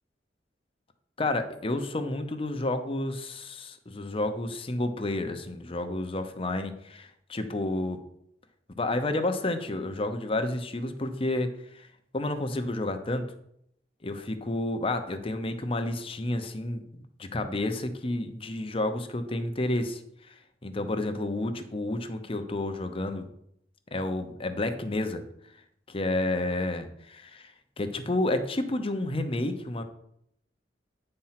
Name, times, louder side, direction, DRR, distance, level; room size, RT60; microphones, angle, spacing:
voice 1, 1.2-8.0 8.8-11.9 12.1-13.2 14.0-20.0 20.3-20.4 20.6-23.3 23.9-25.2 25.9-29.8, left 2 dB, 30° left, 7 dB, 0.8 m, -30 dB
8.8 x 4.4 x 5.8 m, 0.74 s
head